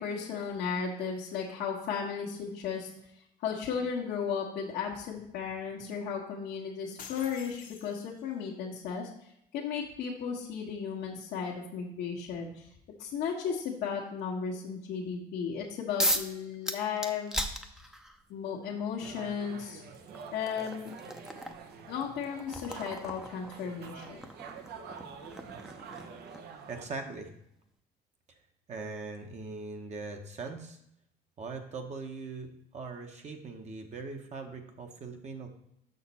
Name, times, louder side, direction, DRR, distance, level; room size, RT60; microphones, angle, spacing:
voice 1, 0.0-2.9 3.4-12.7 13.0-17.3 18.3-19.8 20.3-20.9 21.9-24.2, left 6 dB, 80° left, -3 dB, 1.2 m, -35 dB
sound 1, 7.0-8.4, left 7 dB, 50° left, 0.9 m, -48 dB
sound 2, 16.0-16.3 16.7-18.2 19.3-19.4 19.9-26.6, equal, 5° right, 0.6 m, -37 dB
sound 3, 19.0-26.9, right 6 dB, 70° right, 0.8 m, -47 dB
voice 2, 26.7-27.3 28.7-30.8 31.4-35.5, right 4 dB, 40° right, 4 dB, 1.0 m, -41 dB
6.5 x 5.9 x 4.2 m, 0.77 s
cardioid pair, 110°, 17 cm